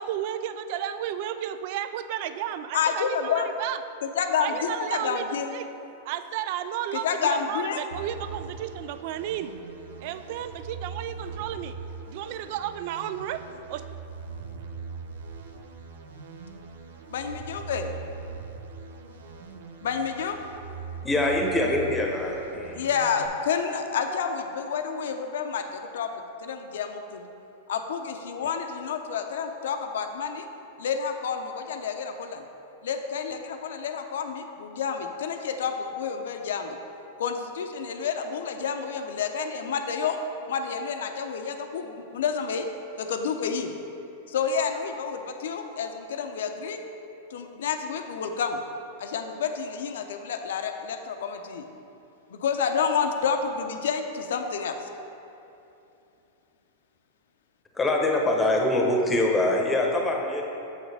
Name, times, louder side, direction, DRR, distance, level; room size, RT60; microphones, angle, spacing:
voice 1, 0.0-3.8 4.4-5.3 5.5-5.7 6.0-9.6 10.0-11.8 12.1-13.8, right 10 dB, 55° right, 11 dB, 0.3 m, -33 dB
voice 2, 2.7-3.5 4.2-5.6 6.9-7.8 17.1-17.9 19.8-20.4 22.7-26.1 26.4-27.2 27.7-30.4 30.8-32.4 32.8-36.8 37.2-40.2 40.5-42.7 43.0-43.7 44.3-46.8 47.3-48.6 49.0-51.7 52.3-54.9, left 6 dB, 80° left, 6 dB, 0.6 m, -29 dB
sound 1, 7.9-23.3, right 5 dB, 90° right, 0.6 m, -41 dB
voice 3, 21.0-22.9 57.7-60.4, left 1 dB, 15° left, 0 dB, 0.9 m, -24 dB
7.3 x 6.4 x 3.4 m, 2.9 s
hypercardioid pair, 130°, 0 cm